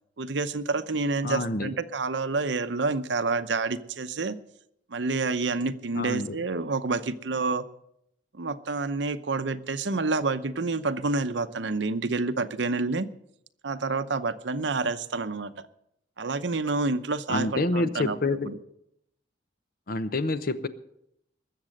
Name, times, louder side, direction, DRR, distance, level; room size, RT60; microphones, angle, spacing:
voice 1, 0.2-4.4 4.9-7.6 8.3-13.1 13.6-15.5 16.2-18.2 18.4-18.6, right 3 dB, 70° right, 0.8 m, -28 dB
voice 2, 1.2-1.7 6.0-6.4 17.3-18.5 19.9-20.7, left 2 dB, 55° left, 0.8 m, -27 dB
20.5 x 7.5 x 6.5 m
head